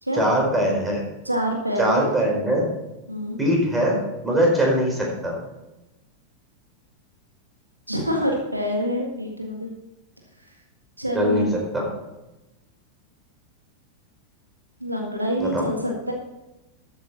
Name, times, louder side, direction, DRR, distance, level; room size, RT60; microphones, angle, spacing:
voice 1, 0.1-1.0 1.8-2.6 3.4-4.0 4.2-5.4 11.1-11.5 11.7-11.9 15.4-15.7, equal, 10° right, -1 dB, 4.7 m, -21 dB
voice 2, 1.3-2.1 3.1-3.4 7.9-9.7 11.0-11.6 14.8-16.1, equal, 85° right, 1 dB, 1.8 m, -26 dB
13.0 x 9.0 x 4.1 m, 0.98 s
figure-of-eight pair, 90°, 0 cm